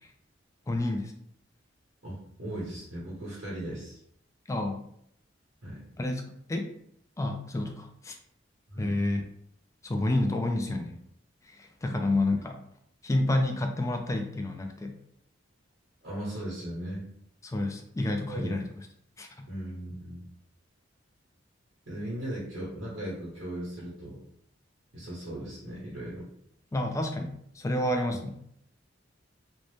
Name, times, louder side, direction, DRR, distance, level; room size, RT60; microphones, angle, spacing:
voice 1, 0.7-1.1 4.5-4.9 6.0-6.2 6.5-6.7 7.2-8.1 8.8-9.2 9.8-11.0 11.6-12.5 13.0-14.9 17.5-18.7 19.2-19.5 26.7-28.3, left 1 dB, 15° left, 4 dB, 0.3 m, -29 dB
voice 2, 2.0-4.0 5.6-5.8 8.7-9.0 12.0-12.3 16.0-17.1 18.2-18.6 19.5-20.2 21.9-24.2 24.9-26.3 28.1-28.2, right 1 dB, 70° right, -7 dB, 1.0 m, -38 dB
2.6 x 2.0 x 3.1 m, 0.70 s
head